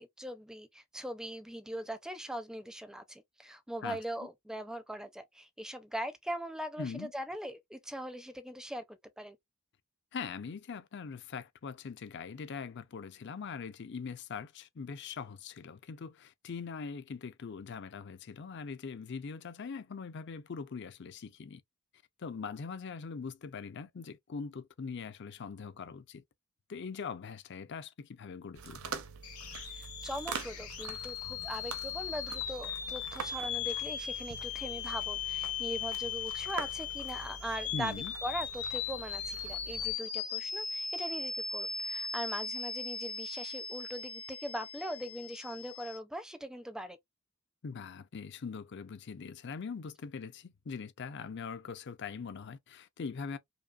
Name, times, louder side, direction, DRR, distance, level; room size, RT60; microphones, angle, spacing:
voice 1, 0.0-9.4 29.7-47.0, equal, 5° right, 0.5 m, -41 dB
voice 2, 6.8-7.1 10.1-21.6 22.2-26.2 26.7-29.0 37.7-38.1 47.6-53.4, left 5 dB, 50° left, 0.5 m, -42 dB
sound 1, 28.6-39.9, right 5 dB, 75° right, 0.8 m, -45 dB
sound 2, 29.2-46.0, left 6 dB, 80° left, 2.1 m, -38 dB
5.2 x 2.3 x 2.3 m
head